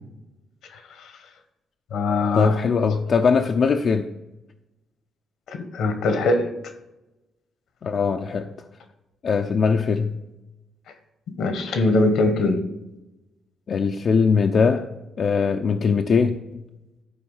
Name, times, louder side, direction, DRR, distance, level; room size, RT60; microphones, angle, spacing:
voice 1, 0.7-1.1 1.9-2.6 5.5-6.5 11.4-12.7, left 2 dB, 75° left, 8 dB, 1.2 m, -22 dB
voice 2, 2.3-4.1 7.8-8.5 9.2-10.2 13.7-14.9 15.2-16.6, left 5 dB, 50° left, 4 dB, 0.5 m, -21 dB
11.5 x 4.4 x 5.6 m, 0.98 s
cardioid pair, 90°, 0 cm